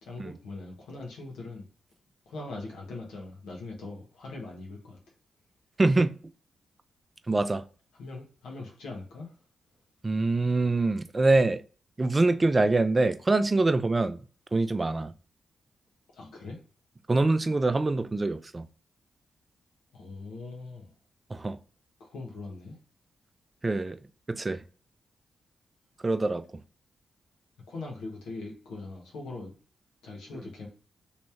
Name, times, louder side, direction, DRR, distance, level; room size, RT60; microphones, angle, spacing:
voice 1, 0.0-1.7 2.2-5.0 8.0-9.4 16.1-16.6 19.9-20.9 22.0-22.8 27.7-29.5 30.0-30.7, left 3 dB, 80° left, 1.3 m, -41 dB
voice 2, 5.8-6.1 7.3-7.6 10.0-11.6 12.0-14.2 14.5-15.1 17.1-18.7 21.3-21.6 23.6-24.0 24.3-24.6 26.0-26.4, right 2 dB, 30° right, 0.4 m, -24 dB
3.1 x 3.0 x 3.4 m
supercardioid pair, 45°, 0 cm